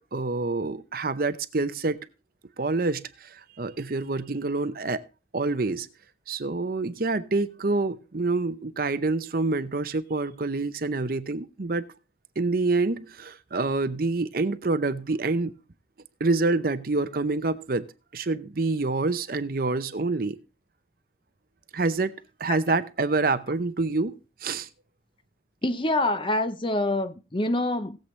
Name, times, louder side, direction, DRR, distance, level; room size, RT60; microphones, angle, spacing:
voice 1, 0.1-2.0 2.6-5.0 5.3-5.9 6.3-11.9 12.4-15.6 16.2-17.9 18.1-20.4 21.7-24.7, right 3 dB, 55° right, 0.7 m, -27 dB
voice 2, 25.6-28.0, left 1 dB, 30° left, 0.8 m, -26 dB
18.0 x 7.7 x 3.2 m
head